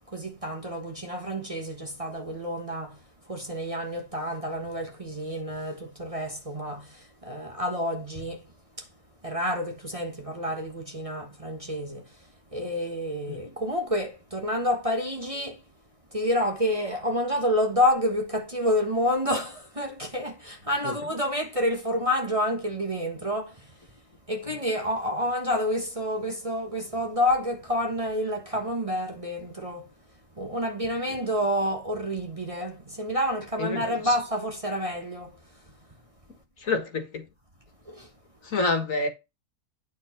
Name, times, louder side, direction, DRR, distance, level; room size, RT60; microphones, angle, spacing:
voice 1, 0.1-3.0 3.3-8.4 8.8-8.9 9.2-12.1 12.5-15.6 16.1-23.7 24.3-29.9 30.4-35.4 37.9-38.1, equal, 25° right, 1.4 m, -29 dB
voice 2, 33.6-34.2 36.6-37.2 38.4-39.1, left 3 dB, 60° left, 2.0 m, -28 dB
9.4 x 4.6 x 4.4 m
omnidirectional pair, 1.6 m